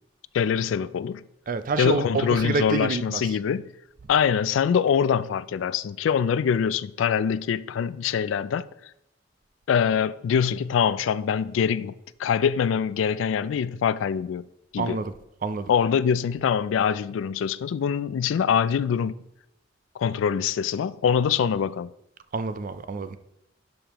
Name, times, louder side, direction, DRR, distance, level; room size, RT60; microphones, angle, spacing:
voice 1, 0.3-1.2 1.8-3.7 4.1-8.7 9.7-14.5 14.7-15.0 15.7-19.2 20.0-21.9, left 7 dB, 90° left, 0.3 m, -24 dB
voice 2, 1.5-3.2 14.8-15.1 15.4-15.7 22.3-23.2, right 4 dB, 45° right, 0.4 m, -27 dB
11.0 x 5.3 x 3.0 m
head